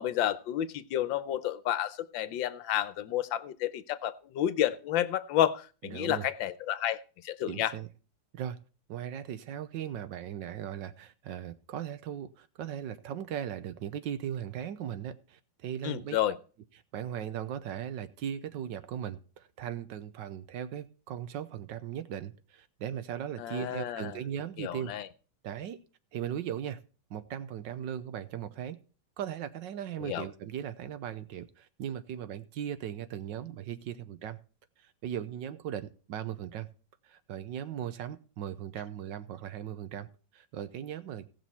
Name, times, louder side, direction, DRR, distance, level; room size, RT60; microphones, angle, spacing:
voice 1, 0.0-7.7 15.8-16.4 23.4-24.2 24.6-25.1 30.0-30.2, left 12 dB, 75° left, 14 dB, 1.4 m, -31 dB
voice 2, 5.8-6.3 7.4-7.9 8.3-8.6 8.9-16.2 16.9-24.9 25.4-25.8 26.1-26.8 27.1-28.8 29.2-34.4 34.8-36.7 37.0-40.1 40.3-41.3, right 9 dB, 70° right, 12 dB, 1.4 m, -38 dB
17.5 x 6.2 x 4.2 m, 0.37 s
omnidirectional pair, 2.1 m